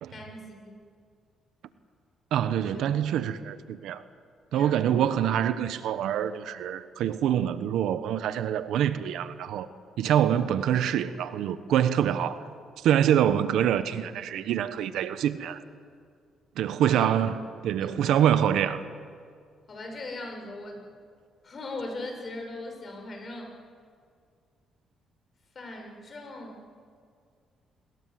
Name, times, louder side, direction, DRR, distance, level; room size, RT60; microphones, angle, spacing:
voice 1, 0.1-0.8 2.7-2.9 4.5-5.0 16.8-17.1 17.8-18.2 19.7-20.9 21.4-23.6 25.5-26.7, left 2 dB, 40° left, 6.4 m, -40 dB
voice 2, 2.3-4.0 4.5-9.7 10.0-12.4 12.8-15.6 16.6-17.4 17.6-18.8, right 10 dB, 80° right, 1.1 m, -25 dB
28.5 x 21.0 x 7.8 m
cardioid pair, 90°, 0 cm